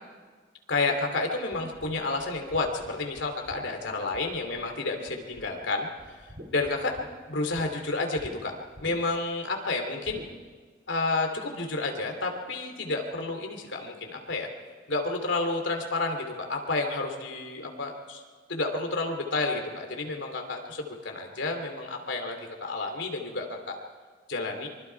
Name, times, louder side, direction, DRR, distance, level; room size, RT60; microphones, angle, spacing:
voice 1, 0.7-5.9 6.5-6.9 7.3-8.5 8.8-10.2 10.9-14.5 14.9-18.2 18.5-23.8 24.3-24.7, left 3 dB, 85° left, 3 dB, 3.0 m, -30 dB
sound 1, 1.5-4.7 5.1-5.7 6.0-7.7 8.2-8.3 8.7-9.3 10.0-10.3, equal, 55° right, 3.2 m, -47 dB
25.0 x 24.5 x 4.7 m, 1.5 s
head